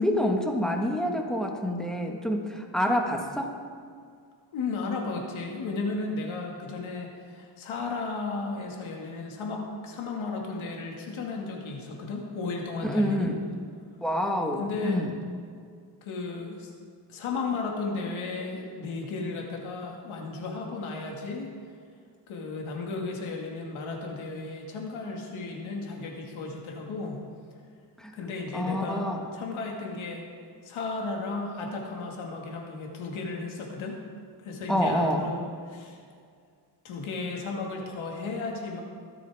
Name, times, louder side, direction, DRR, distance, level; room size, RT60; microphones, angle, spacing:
voice 1, 0.0-3.5 12.8-13.4 14.0-15.1 28.0-28.2 28.5-29.2 34.7-35.3, equal, ahead, 2 dB, 1.6 m, -27 dB
voice 2, 4.5-13.3 14.6-15.0 16.0-16.7 17.1-21.5 22.3-27.2 28.1-29.1 29.3-30.2 30.6-34.0 34.4-35.4 35.7-36.0 36.8-38.8, left 3 dB, 90° left, 0 dB, 2.2 m, -34 dB
23.5 x 8.5 x 3.6 m, 2.1 s
cardioid pair, 110°, 46 cm